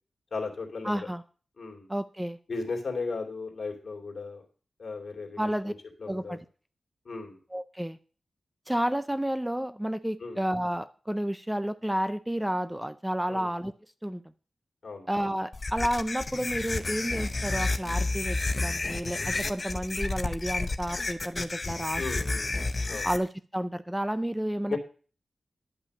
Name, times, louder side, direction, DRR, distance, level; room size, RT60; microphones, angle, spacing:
voice 1, 0.3-1.1 1.6-1.9 2.5-4.4 4.8-6.4 7.0-7.4 10.2-10.4 13.3-13.5 14.8-15.1 21.9-22.5 22.9-23.1 24.7-24.8, left 4 dB, 60° left, 2 dB, 2.5 m, -36 dB
voice 2, 0.8-1.2 1.9-2.4 5.4-5.7 6.1-6.4 7.5-8.0 8.7-13.7 14.0-14.2 15.1-22.0 23.0-24.8, equal, 5° right, 12 dB, 0.4 m, -31 dB
sound 1, 15.5-23.2, left 2 dB, 35° left, 0.7 m, -30 dB
11.0 x 5.5 x 6.4 m, 0.39 s
wide cardioid pair, 115°, 0 cm